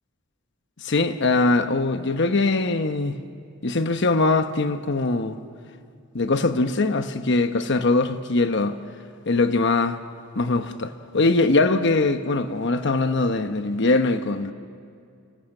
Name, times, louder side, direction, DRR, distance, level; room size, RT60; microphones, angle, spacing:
voice 1, 0.8-3.2 3.6-5.4 6.1-8.8 9.3-10.0 10.4-14.5, left 3 dB, 60° left, 1.0 m, -22 dB
29.5 x 29.0 x 6.6 m
head